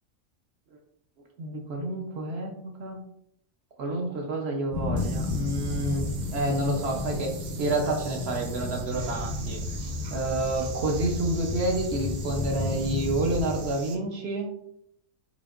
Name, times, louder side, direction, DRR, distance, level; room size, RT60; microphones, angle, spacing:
voice 1, 1.4-3.0 3.8-9.6 10.1-14.5, right 2 dB, 60° right, 1 dB, 0.8 m, -29 dB
sound 1, 4.7-13.7, left 3 dB, 45° left, 0.5 m, -33 dB
sound 2, 5.0-13.9, right 3 dB, 90° right, 0.4 m, -42 dB
5.1 x 2.8 x 2.4 m, 0.74 s
omnidirectional pair, 1.4 m